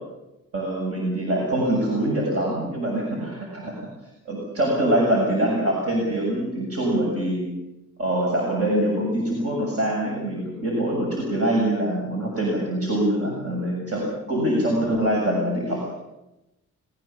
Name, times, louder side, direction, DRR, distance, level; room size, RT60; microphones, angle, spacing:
voice 1, 0.5-3.8 4.3-7.5 8.0-15.9, right 1 dB, 50° right, -1 dB, 7.2 m, -24 dB
21.0 x 20.5 x 7.4 m, 0.97 s
cardioid pair, 90°, 30 cm